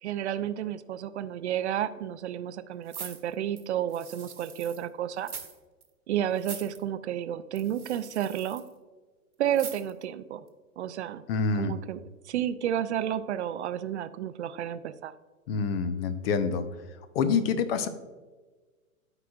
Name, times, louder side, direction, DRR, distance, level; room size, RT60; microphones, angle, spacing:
voice 1, 0.0-5.3 6.1-8.6 9.4-10.4 10.8-11.2 11.5-15.1, right 10 dB, 55° right, 13 dB, 0.5 m, -31 dB
sound 1, 2.9-4.8 5.2-5.6 5.8-5.9 6.3-6.8 7.5-8.7 9.5-10.0 10.5-10.6, right 6 dB, 85° right, 1.2 m, -42 dB
voice 2, 11.3-11.7 15.5-16.6 17.1-17.9, left 5 dB, 45° left, 11 dB, 0.8 m, -26 dB
12.5 x 4.9 x 2.4 m, 1.3 s
figure-of-eight pair, 110°, 43 cm